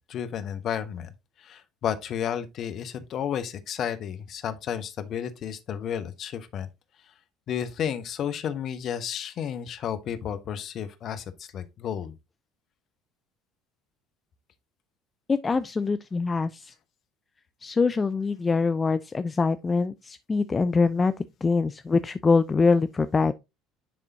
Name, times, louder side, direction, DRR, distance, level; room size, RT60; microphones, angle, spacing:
voice 1, 0.1-1.1 1.4-6.7 7.5-12.1, left 9 dB, 50° left, 0.9 m, -32 dB
voice 2, 15.3-16.7 17.6-21.1 21.4-23.3, left 4 dB, 25° left, 0.4 m, -24 dB
10.5 x 3.6 x 2.7 m
figure-of-eight pair, 60°, 0 cm